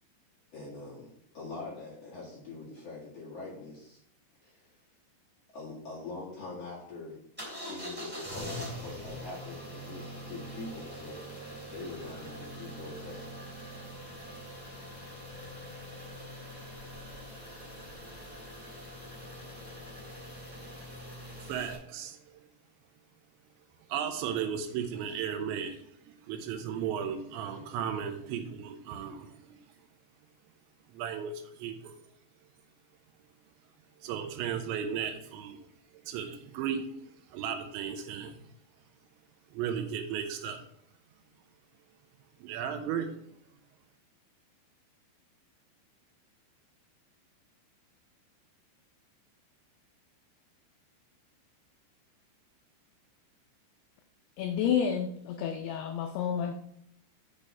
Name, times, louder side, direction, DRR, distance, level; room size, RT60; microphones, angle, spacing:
voice 1, 0.5-4.0 4.4-4.8 5.5-7.2 7.7-13.4, left 3 dB, 50° left, -6 dB, 1.9 m, -44 dB
sound 1, 7.4-21.7, equal, 5° right, 1.4 m, -43 dB
voice 2, 21.5-22.2 23.9-29.3 30.9-31.9 34.0-35.6 36.1-36.9 37.3-38.4 39.5-40.6 42.4-43.1, right 8 dB, 80° right, 6 dB, 3.0 m, -35 dB
voice 3, 54.4-56.5, left 8 dB, 85° left, 6 dB, 2.3 m, -30 dB
8.3 x 5.1 x 4.2 m, 0.71 s
omnidirectional pair, 5.3 m